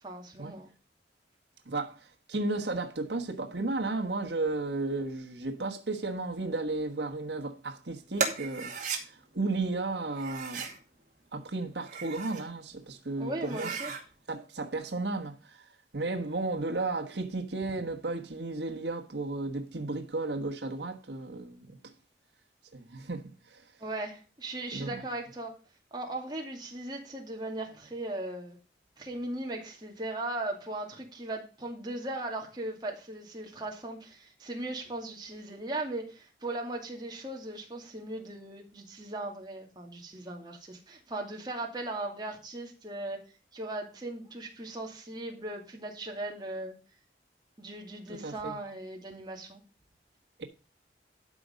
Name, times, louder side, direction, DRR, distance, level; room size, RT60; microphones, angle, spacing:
voice 1, 0.0-0.7 13.2-13.9 23.8-25.5 25.9-28.6 29.0-43.2 43.5-46.7 47.6-49.6, right 2 dB, 25° right, 2.4 m, -38 dB
voice 2, 1.7-10.7 11.3-13.8 14.3-21.8 22.7-23.7 24.7-25.0 48.1-48.6 50.4-50.5, right 2 dB, 80° right, 1.3 m, -34 dB
sound 1, 8.2-9.0 10.1-10.8 11.7-12.5 12.9-13.0 13.4-14.0, right 5 dB, 45° right, 2.2 m, -35 dB
12.5 x 5.1 x 5.1 m
head